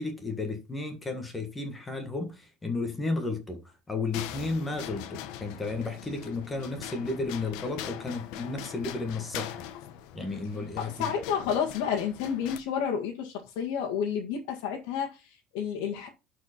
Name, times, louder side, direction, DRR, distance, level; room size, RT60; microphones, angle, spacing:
voice 1, 0.0-9.6 10.1-11.1, left 3 dB, 10° left, 1.5 m, -33 dB
sound 1, 4.1-12.6, left 11 dB, 65° left, 1.0 m, -42 dB
voice 2, 10.8-16.1, left 7 dB, 80° left, 1.8 m, -30 dB
11.5 x 4.7 x 4.4 m
cardioid pair, 170°, 0 cm